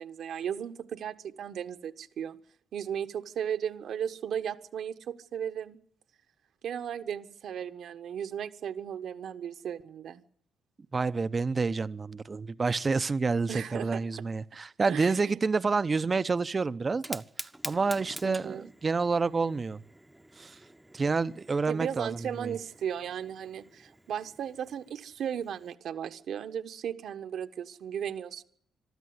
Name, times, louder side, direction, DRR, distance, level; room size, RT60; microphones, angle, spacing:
voice 1, 0.0-2.4 2.7-5.8 6.6-10.2 13.5-14.2 14.9-15.4 18.2-18.7 21.7-28.4, right 8 dB, 65° right, 1.3 m, -36 dB
voice 2, 10.9-17.2 17.6-19.8 20.4-20.5 20.9-22.5, right 4 dB, 30° right, 0.8 m, -28 dB
Fire, 16.9-25.7, right 1 dB, 5° right, 1.0 m, -47 dB
22.5 x 13.0 x 9.6 m
cardioid pair, 90°, 0 cm